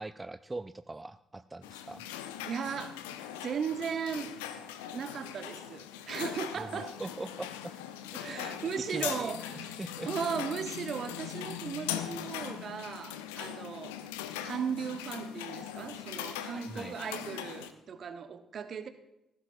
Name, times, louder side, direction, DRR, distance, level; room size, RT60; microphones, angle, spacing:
voice 1, 0.0-2.0 6.6-7.7 8.1-10.1 16.5-17.0, right 2 dB, 20° right, 12 dB, 0.4 m, -42 dB
sound 1, 1.6-17.7, left 10 dB, 70° left, 0.7 m, -40 dB
voice 2, 2.4-3.0 3.4-4.3 4.9-7.0 8.2-9.7 10.0-14.0 14.4-18.9, right 6 dB, 50° right, 10 dB, 1.1 m, -37 dB
18.5 x 15.5 x 2.6 m, 0.89 s
figure-of-eight pair, 40°, 0 cm